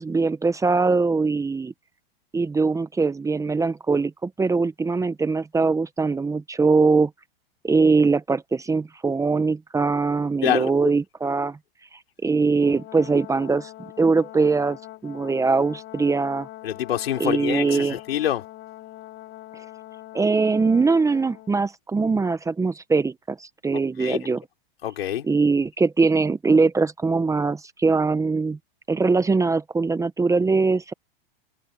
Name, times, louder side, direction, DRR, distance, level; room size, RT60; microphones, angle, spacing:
voice 1, 0.0-1.7 2.3-7.1 7.6-11.6 12.2-13.7 14.0-14.8 15.0-16.5 17.2-18.0 20.1-24.4 25.3-28.6 28.9-30.9, right 4 dB, 10° right, 1.0 m, -22 dB
voice 2, 10.4-10.9 16.6-18.4 24.0-24.2 24.8-25.3, left 11 dB, 85° left, 3.7 m, -26 dB
Brass instrument, 12.6-21.5, left 14 dB, 40° left, 4.5 m, -42 dB
hypercardioid pair, 120°, 29 cm